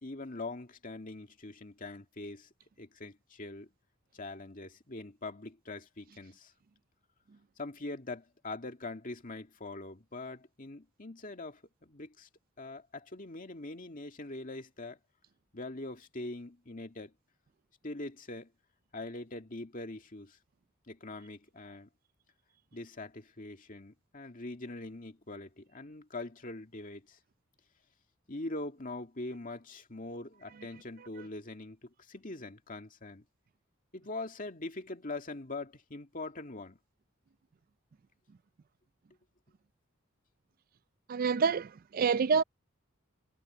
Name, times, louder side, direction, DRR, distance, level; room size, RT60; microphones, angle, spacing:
voice 1, 0.0-2.5 2.8-3.7 4.1-6.5 7.6-12.3 12.6-15.0 15.5-17.1 17.8-18.5 18.9-20.4 20.9-21.9 22.7-27.2 28.3-33.2 33.9-36.8, left 2 dB, 40° left, 2.2 m, -43 dB
voice 2, 41.1-42.4, right 5 dB, 45° right, 0.4 m, -27 dB
head